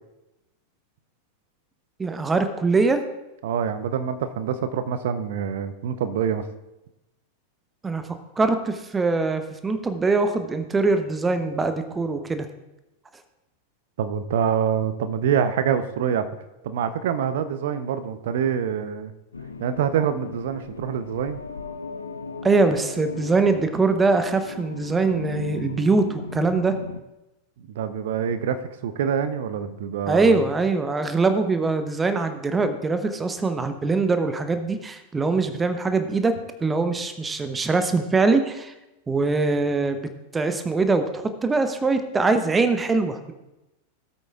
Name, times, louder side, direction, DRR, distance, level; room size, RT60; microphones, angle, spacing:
voice 1, 2.0-3.0 7.8-8.0 8.4-12.5 22.4-26.7 30.1-36.3 36.6-38.7 39.1-40.1 40.3-43.3, right 3 dB, 15° right, 9 dB, 0.8 m, -22 dB
voice 2, 3.4-6.4 14.0-16.2 16.6-19.1 19.6-21.4 27.6-30.5, right 8 dB, 55° right, 11 dB, 0.7 m, -25 dB
sound 1, 19.3-27.0, left 4 dB, 75° left, 0.6 m, -36 dB
16.5 x 8.3 x 2.4 m, 0.97 s
figure-of-eight pair, 90°, 0 cm